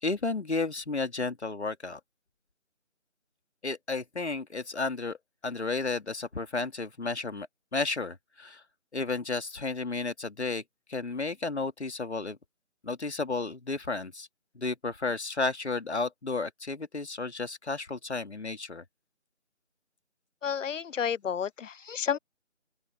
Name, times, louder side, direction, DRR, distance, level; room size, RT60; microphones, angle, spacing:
voice 1, 0.0-2.0 3.6-5.2 5.4-7.5 7.7-8.6 8.9-10.6 10.9-12.4 12.8-14.3 14.5-18.8, left 3 dB, 55° left, 2.3 m, -32 dB
voice 2, 20.4-22.2, left 7 dB, 75° left, 0.5 m, -31 dB
open air
figure-of-eight pair, 170°, 39 cm